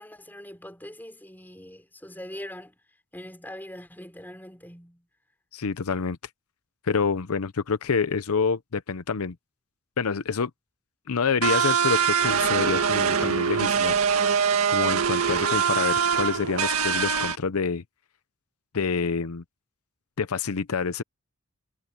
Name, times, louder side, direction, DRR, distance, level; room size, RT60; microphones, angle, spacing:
voice 1, 0.0-2.8 3.1-5.1, left 1 dB, 10° left, 4.9 m, -42 dB
voice 2, 5.5-6.2 6.8-9.4 10.0-10.5 11.1-13.9 14.3-14.4 14.7-17.8 18.7-19.4 20.2-21.0, left 5 dB, 85° left, 0.7 m, -27 dB
sound 1, 11.4-17.4, right 6 dB, 85° right, 1.8 m, -23 dB
head